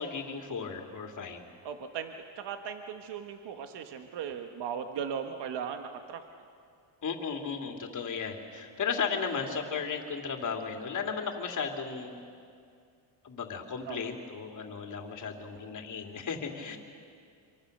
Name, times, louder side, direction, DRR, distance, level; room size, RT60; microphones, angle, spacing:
voice 1, 0.0-1.4 7.0-12.2 13.2-16.8, left 5 dB, 40° left, 3 dB, 2.8 m, -35 dB
voice 2, 1.6-6.2 13.9-14.0, right 7 dB, 60° right, 6 dB, 1.5 m, -38 dB
26.5 x 24.0 x 6.7 m, 2.3 s
cardioid pair, 120°, 46 cm